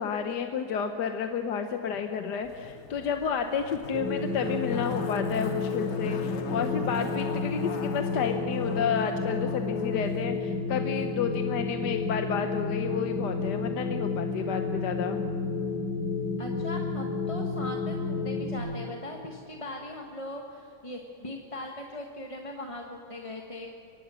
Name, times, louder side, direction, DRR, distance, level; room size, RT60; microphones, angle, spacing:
voice 1, 0.0-15.2, left 6 dB, 75° left, 6 dB, 1.5 m, -31 dB
Zipper (clothing), 2.4-10.1 10.3-10.4, left 5 dB, 45° left, 1.1 m, -42 dB
sound 1, 3.9-18.6, left 4 dB, 10° right, 5.0 m, -31 dB
voice 2, 16.4-23.7, left 1 dB, 20° left, 1 dB, 1.2 m, -40 dB
24.0 x 18.5 x 6.3 m, 2.8 s
omnidirectional pair, 1.9 m